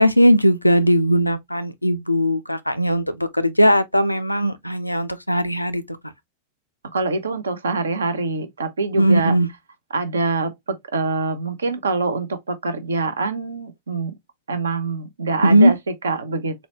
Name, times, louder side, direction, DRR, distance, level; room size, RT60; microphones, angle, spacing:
voice 1, 0.0-5.8 9.0-9.5 15.4-15.7, equal, 85° left, 0.4 m, -18 dB
voice 2, 6.9-9.4 9.9-14.1 14.5-16.7, right 3 dB, 70° right, 0.6 m, -25 dB
3.9 x 2.2 x 2.8 m
figure-of-eight pair, 90°, 0 cm